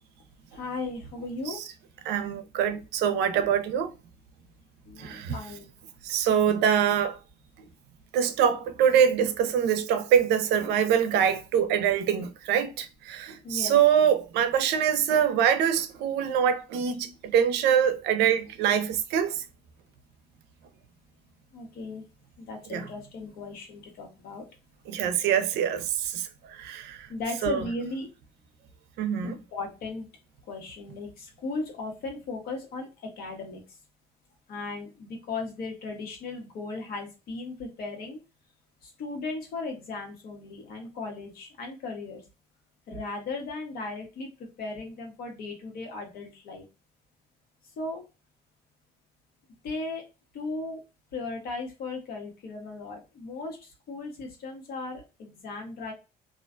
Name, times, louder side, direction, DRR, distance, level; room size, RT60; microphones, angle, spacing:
voice 1, 0.5-1.6 4.8-5.7 13.4-13.8 21.5-22.0 22.4-24.4 27.1-28.1 29.2-30.1 30.5-33.6 34.5-38.2 38.8-42.2 42.9-44.3 44.6-46.6 47.8-48.0 49.6-50.0 50.3-50.8 51.1-55.9, left 3 dB, 65° left, 1.0 m, -36 dB
voice 2, 2.1-3.9 5.0-5.4 6.0-7.2 8.1-19.4 22.7-22.9 24.9-27.1 27.4-27.6 29.0-29.4, right 8 dB, 85° right, 0.5 m, -24 dB
2.4 x 2.1 x 2.4 m
cardioid pair, 110°, 17 cm